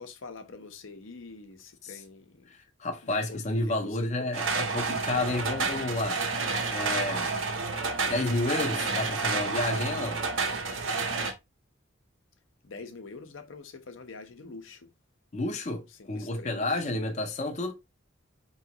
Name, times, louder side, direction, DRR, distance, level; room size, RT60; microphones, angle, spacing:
voice 1, 0.0-2.5 3.0-4.0 12.6-14.9 16.0-16.7 17.0-17.3, left 4 dB, 75° left, 0.7 m, -45 dB
voice 2, 2.5-6.2 6.7-7.4 8.1-10.2 15.3-17.7, left 2 dB, 35° left, 0.5 m, -30 dB
sound 1, 4.3-11.3, right 4 dB, 75° right, 0.8 m, -30 dB
4.8 x 3.1 x 2.8 m
head